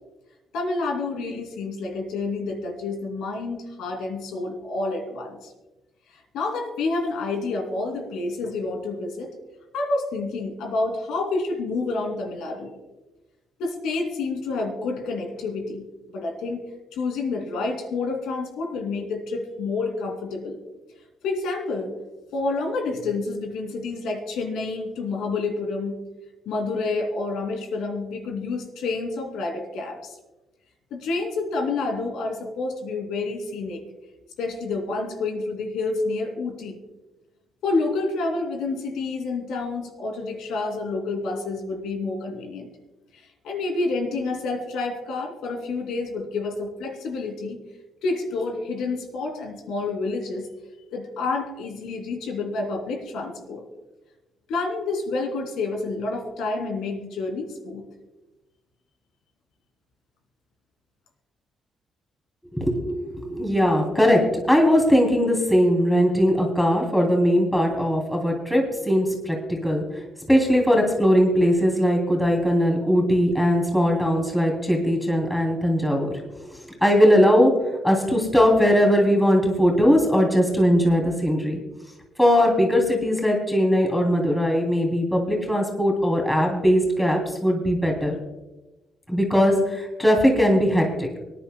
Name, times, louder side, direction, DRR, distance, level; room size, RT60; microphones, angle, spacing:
voice 1, 0.5-5.5 6.1-9.3 9.7-12.8 13.6-15.9 16.1-16.6 16.9-20.6 21.2-21.9 22.3-26.0 26.5-30.1 30.9-33.8 34.4-36.8 37.6-42.7 43.1-47.6 48.0-50.5 50.9-53.6 54.5-57.8, left 3 dB, 85° left, 3 dB, 2.6 m, -29 dB
voice 2, 62.5-70.0 70.3-76.1 76.5-77.5 77.8-81.6 82.2-88.1 89.1-91.2, equal, 5° left, 0 dB, 2.8 m, -20 dB
24.0 x 10.0 x 2.2 m, 1.1 s
cardioid pair, 90°, 0 cm